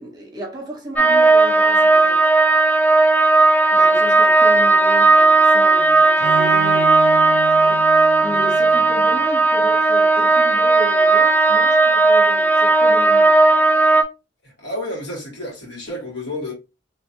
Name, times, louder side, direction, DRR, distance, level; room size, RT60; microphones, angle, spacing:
voice 1, 0.0-2.3 3.7-13.3, equal, 20° right, 1.1 m, -34 dB
sound 1, 1.0-14.0, right 3 dB, 5° left, 0.3 m, -15 dB
Bowed string instrument, 6.2-9.2, right 3 dB, 65° right, 0.4 m, -29 dB
voice 2, 14.4-16.5, left 1 dB, 70° left, 1.7 m, -30 dB
2.9 x 2.4 x 2.8 m
head